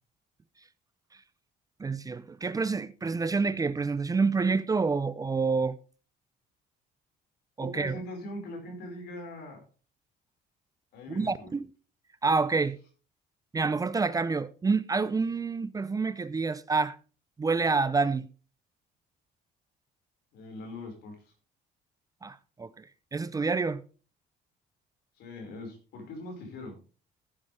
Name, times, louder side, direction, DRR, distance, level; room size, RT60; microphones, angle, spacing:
voice 1, 1.8-5.8 7.6-8.0 11.1-11.7 12.2-12.8 13.5-17.0 17.4-18.3 22.2-22.8 23.1-23.8, right 4 dB, 20° right, 0.6 m, -28 dB
voice 2, 7.6-9.6 10.9-11.5 20.3-21.1 25.2-26.8, left 1 dB, 80° left, 5.1 m, -41 dB
15.0 x 9.5 x 3.4 m
cardioid pair, 110°, 17 cm